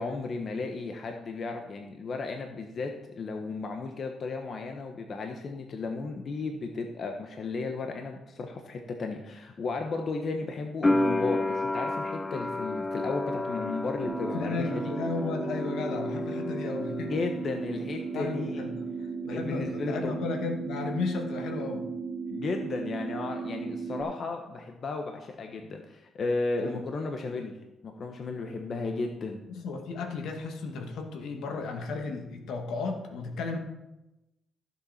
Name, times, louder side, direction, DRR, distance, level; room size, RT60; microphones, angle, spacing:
voice 1, 0.0-14.8 17.1-18.6 19.3-20.2 22.3-27.6 27.8-29.4, left 3 dB, 50° left, 4 dB, 1.2 m, -34 dB
sound 1, 10.8-17.6 17.9-18.8, left 2 dB, 20° left, 0.7 m, -31 dB
sound 2, 14.0-24.0, right 5 dB, 35° right, 2.3 m, -36 dB
voice 2, 14.3-17.1 18.1-18.9 19.2-21.9 26.6-26.8 29.5-33.6, left 4 dB, 80° left, 3 dB, 2.0 m, -34 dB
15.0 x 7.2 x 4.3 m, 0.96 s
cardioid pair, 90°, 0 cm